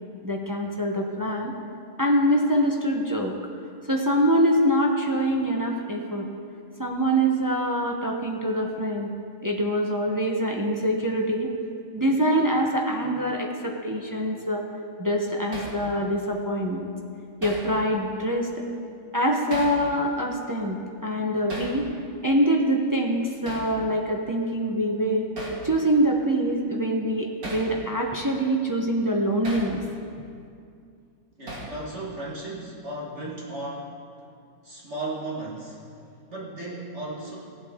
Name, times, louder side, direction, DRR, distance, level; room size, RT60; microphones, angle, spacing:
voice 1, 0.2-1.5 2.0-3.3 3.9-6.2 6.8-9.1 9.4-11.5 11.9-14.6 15.0-16.9 17.4-18.5 19.1-20.8 21.0-21.8 22.2-25.3 25.6-29.8, equal, 20° right, 0 dB, 0.7 m, -24 dB
Hammer, 15.5-15.8 17.4-17.7 19.5-19.8 21.5-21.8 23.5-23.7 25.4-25.6 27.4-27.7 29.4-29.7 31.5-31.8, right 1 dB, 90° right, 2.4 m, -35 dB
voice 2, 31.4-34.0 34.6-35.8 36.3-37.4, right 2 dB, 50° right, -5 dB, 1.8 m, -35 dB
17.0 x 8.0 x 3.7 m, 2.4 s
omnidirectional pair, 1.5 m